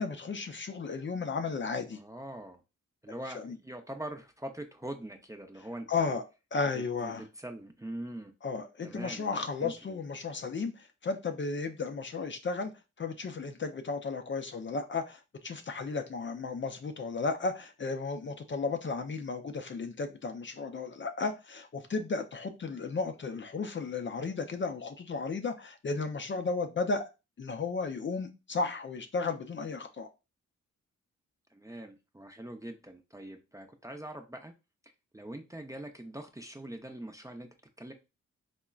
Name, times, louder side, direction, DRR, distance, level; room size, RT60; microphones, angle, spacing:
voice 1, 0.0-2.0 3.3-3.6 5.9-6.2 6.5-7.2 8.4-12.7 13.0-27.0 27.4-30.1, left 4 dB, 40° left, 0.5 m, -34 dB
voice 2, 1.9-2.6 3.0-6.2 6.7-8.3 8.8-10.0 31.5-34.5 35.1-37.5 37.8-37.9, right 1 dB, 10° right, 0.5 m, -43 dB
3.7 x 2.1 x 2.3 m
supercardioid pair, 50°, 32 cm